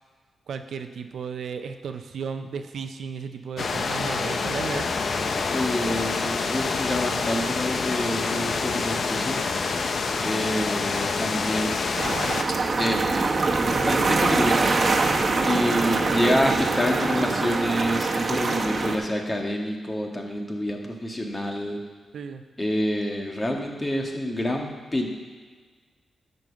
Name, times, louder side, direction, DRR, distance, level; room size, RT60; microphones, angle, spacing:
voice 1, 0.5-5.0 22.1-22.4, right 6 dB, 80° right, 8 dB, 0.6 m, -34 dB
sound 1, 3.6-12.4, left 4 dB, 60° left, 0.8 m, -27 dB
voice 2, 5.5-9.4 10.2-11.7 12.8-13.2 13.6-14.7 15.4-21.8 22.6-25.1, equal, 25° left, 1 dB, 1.8 m, -27 dB
sound 2, 12.0-19.0, right 3 dB, 50° right, 1.2 m, -24 dB
10.5 x 5.4 x 7.3 m, 1.5 s
cardioid pair, 75°, 0 cm